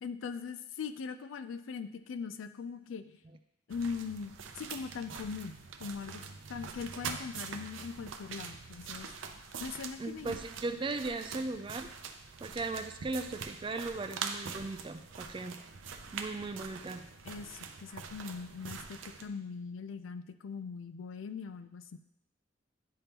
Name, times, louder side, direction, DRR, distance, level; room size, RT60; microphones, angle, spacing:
voice 1, 0.0-3.2 3.7-9.1 9.6-10.3 17.2-22.0, left 5 dB, 85° left, 9 dB, 0.4 m, -41 dB
sound 1, 3.7-19.3, right 6 dB, 80° right, 0.5 m, -44 dB
voice 2, 10.0-11.9 12.4-15.6 16.1-17.1, right 3 dB, 25° right, 8 dB, 0.3 m, -37 dB
10.5 x 3.5 x 2.9 m, 0.81 s
head